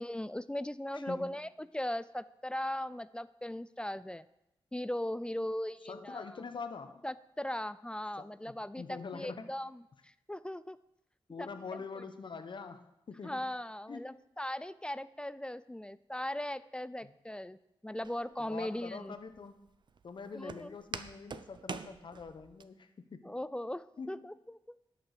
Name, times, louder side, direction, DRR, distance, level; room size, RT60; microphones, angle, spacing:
voice 1, 0.0-4.2 4.7-6.2 7.0-10.8 11.4-11.5 13.2-17.6 17.8-19.1 20.3-20.7 23.2-24.6, left 1 dB, 10° left, 16 dB, 0.3 m, -38 dB
voice 2, 0.9-1.4 5.8-7.0 8.2-9.5 11.3-13.4 13.9-14.1 17.0-17.1 18.4-19.6 20.0-23.3 24.0-24.3, left 5 dB, 60° left, 9 dB, 0.9 m, -45 dB
Walk footsteps, 18.0-22.6, right 5 dB, 55° right, 0.6 m, -46 dB
11.0 x 6.0 x 6.6 m, 0.86 s
wide cardioid pair, 85°, 9 cm